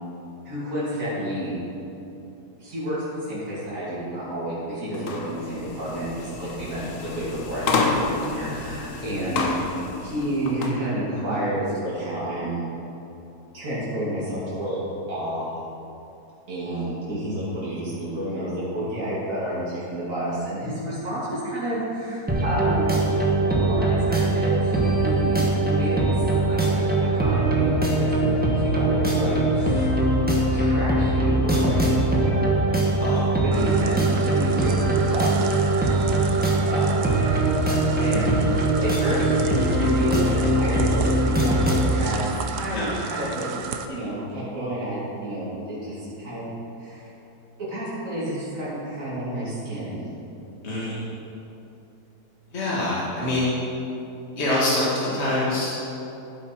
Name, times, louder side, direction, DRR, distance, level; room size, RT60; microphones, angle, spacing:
voice 1, 0.4-1.5 2.6-12.6 13.5-14.8 15.1-15.6 16.5-23.1 23.5-25.4 25.7-26.0 26.5-29.9 30.5-31.8 33.4-35.5 36.7-37.1 38.0-43.4 43.9-46.5 46.8-47.1 47.7-50.0, right 1 dB, 55° right, -10 dB, 3.3 m, -30 dB
sound 1, 4.9-10.8, left 3 dB, 60° left, 1.3 m, -29 dB
sound 2, 22.3-42.0, right 2 dB, 5° right, 1.4 m, -21 dB
sound 3, 33.5-43.9, right 6 dB, 90° right, 1.3 m, -34 dB
voice 2, 50.6-51.0 52.5-53.5 54.4-55.7, left 1 dB, 45° left, -7 dB, 2.2 m, -25 dB
14.5 x 8.1 x 4.6 m, 2.8 s
omnidirectional pair, 1.7 m